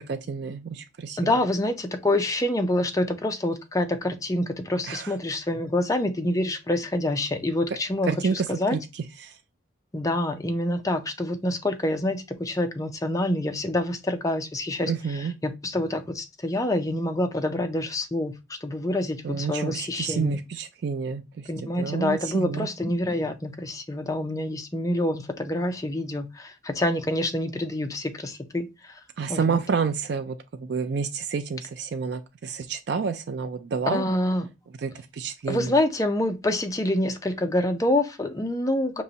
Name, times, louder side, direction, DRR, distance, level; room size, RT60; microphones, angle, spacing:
voice 1, 0.0-1.3 4.9-5.1 8.0-9.3 14.9-15.3 19.2-21.5 21.8-22.7 29.2-34.0 34.8-35.8, right 5 dB, 55° right, 0.3 m, -29 dB
voice 2, 1.2-8.8 9.9-18.3 18.6-20.4 21.5-28.9 29.3-29.6 33.9-34.5 35.5-39.0, left 1 dB, 15° left, 0.5 m, -27 dB
5.4 x 3.0 x 2.8 m
head